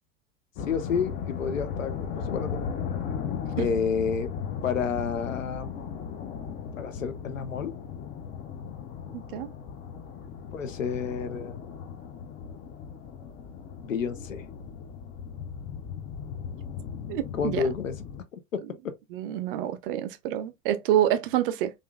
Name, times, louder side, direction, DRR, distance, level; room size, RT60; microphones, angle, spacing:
voice 1, 0.6-2.7 3.6-4.3 4.6-5.9 6.8-7.7 9.1-9.2 10.5-11.6 13.8-14.4 17.4-17.9 18.3-18.6, left 6 dB, 75° left, 0.6 m, -30 dB
sound 1, 0.6-18.2, left 7 dB, 20° left, 0.4 m, -36 dB
voice 2, 9.1-9.5 17.1-17.7 19.1-21.7, right 12 dB, 45° right, 0.5 m, -27 dB
3.4 x 2.5 x 2.2 m
figure-of-eight pair, 80°, 39 cm